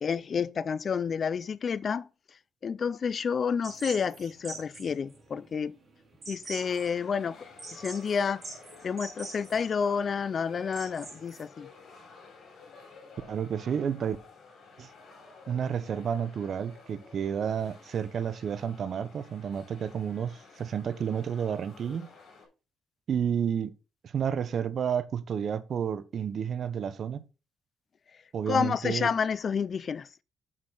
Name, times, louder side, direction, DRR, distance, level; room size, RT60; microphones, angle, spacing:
voice 1, 0.0-2.1 2.6-5.8 6.3-7.4 7.7-8.4 8.8-11.7 28.5-30.1, left 6 dB, 45° left, 0.4 m, -29 dB
sound 1, 3.6-11.4, right 3 dB, 35° right, 3.7 m, -45 dB
sound 2, 6.5-22.5, left 3 dB, 65° left, 3.9 m, -52 dB
voice 2, 13.3-14.2 14.8-14.9 15.5-22.1 23.1-23.7 24.0-27.2 28.3-29.1, right 8 dB, 55° right, 0.7 m, -31 dB
7.5 x 6.3 x 3.9 m
cardioid pair, 90°, 0 cm